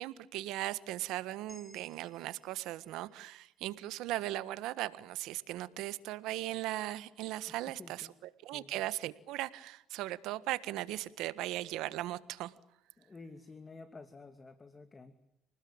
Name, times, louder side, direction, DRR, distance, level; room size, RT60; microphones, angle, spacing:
voice 1, 0.0-8.1 8.4-12.5, right 15 dB, 80° right, 1.5 m, -38 dB
sound 1, 1.5-5.7, equal, ahead, 4.8 m, -63 dB
voice 2, 7.5-8.1 8.4-8.8 13.0-15.2, left 3 dB, 25° left, 2.4 m, -51 dB
29.0 x 20.0 x 8.9 m
supercardioid pair, 85°, 0 cm